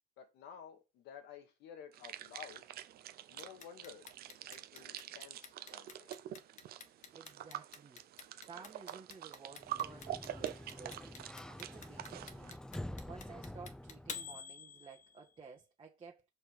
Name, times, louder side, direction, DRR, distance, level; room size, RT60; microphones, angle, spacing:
voice 1, 0.2-2.7 3.3-4.1 4.5-6.1, left 7 dB, 85° left, 2.0 m, -53 dB
sound 1, 1.9-12.6, right 12 dB, 65° right, 0.8 m, -46 dB
Clock, 3.4-15.4, left 6 dB, 45° left, 1.4 m, -49 dB
voice 2, 7.1-8.0 8.4-12.6 13.0-16.3, right 5 dB, 30° right, 1.6 m, -54 dB
Sliding door, 9.5-14.4, left 1 dB, 5° left, 0.4 m, -48 dB
6.2 x 5.3 x 4.8 m
cardioid pair, 110°, 17 cm